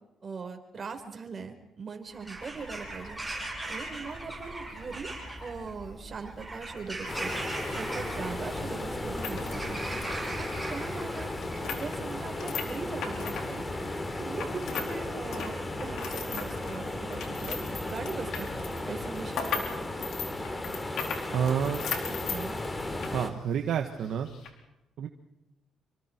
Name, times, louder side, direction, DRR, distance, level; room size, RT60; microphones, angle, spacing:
voice 1, 0.2-3.2 3.7-5.1 5.4-7.3 7.7-9.8 10.3-11.4 11.7-13.6 14.2-18.5 18.9-19.6 22.2-22.6, right 4 dB, 40° right, 5 dB, 4.6 m, -40 dB
Bird vocalization bird call bird song / Crow, 2.1-12.0, right 2 dB, 5° right, 7.5 m, -39 dB
sound 1, 7.1-23.3, left 2 dB, 20° left, 3.2 m, -35 dB
sound 2, 9.1-15.0 15.2-23.2 23.5-23.6 24.3-24.5, left 6 dB, 75° left, 4.7 m, -38 dB
voice 2, 21.3-21.8 23.1-24.3 25.0-25.1, right 8 dB, 70° right, 5 dB, 1.6 m, -29 dB
27.5 x 25.0 x 4.6 m, 0.94 s
cardioid pair, 90°, 0 cm